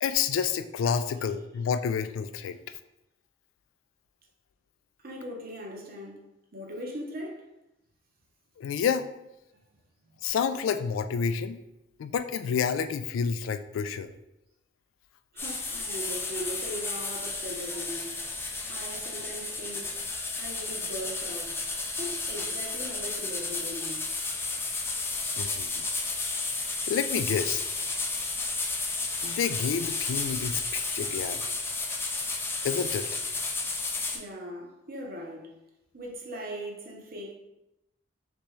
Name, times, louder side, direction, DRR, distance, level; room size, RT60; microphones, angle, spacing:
voice 1, 0.0-2.6 8.6-9.1 10.2-11.6 12.0-14.1 25.4-25.8 26.9-27.6 29.2-31.5 32.6-33.1, left 6 dB, 85° left, 0.3 m, -29 dB
voice 2, 5.0-7.5 10.1-10.2 15.3-18.2 18.7-20.1 20.4-21.6 22.0-24.1 34.1-35.5 35.9-37.3, equal, 50° right, 0.8 m, -39 dB
sound 1, 15.4-34.2, left 3 dB, 10° left, 0.4 m, -32 dB
4.0 x 3.5 x 3.1 m
head